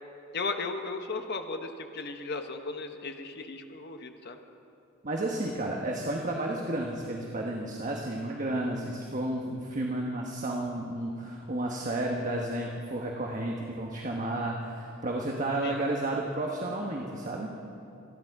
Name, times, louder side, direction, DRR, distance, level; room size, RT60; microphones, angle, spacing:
voice 1, 0.3-4.4 15.6-15.8, left 3 dB, 55° left, 6 dB, 1.0 m, -36 dB
voice 2, 5.0-17.5, right 1 dB, 40° right, -1 dB, 1.2 m, -32 dB
26.0 x 10.5 x 4.8 m, 2.8 s
head